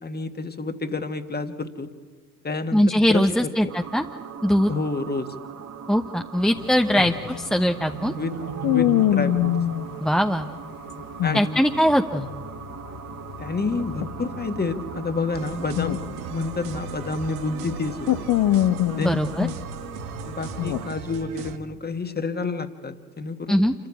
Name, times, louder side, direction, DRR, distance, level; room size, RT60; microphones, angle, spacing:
voice 1, 0.0-1.9 2.4-3.3 3.6-3.7 4.7-5.3 7.0-7.1 8.2-8.3 8.7-9.5 11.2-11.6 13.4-16.0 16.3-18.3 18.9-19.2 20.3-23.6, left 3 dB, 20° left, 8 dB, 1.7 m, -29 dB
voice 2, 2.7-4.0 4.4-4.7 5.9-8.1 10.0-10.5 11.3-12.3 19.0-19.5 23.5-23.7, equal, ahead, 4 dB, 0.9 m, -21 dB
sound 1, 3.7-20.9, right 7 dB, 35° right, 1.3 m, -39 dB
sound 2, 6.6-9.9 10.9-12.0 12.2-17.4 17.7-20.8, left 13 dB, 50° left, 1.0 m, -25 dB
sound 3, 15.3-21.6, right 7 dB, 70° right, 1.3 m, -38 dB
28.0 x 14.0 x 8.4 m, 1.5 s
figure-of-eight pair, 55°, 43 cm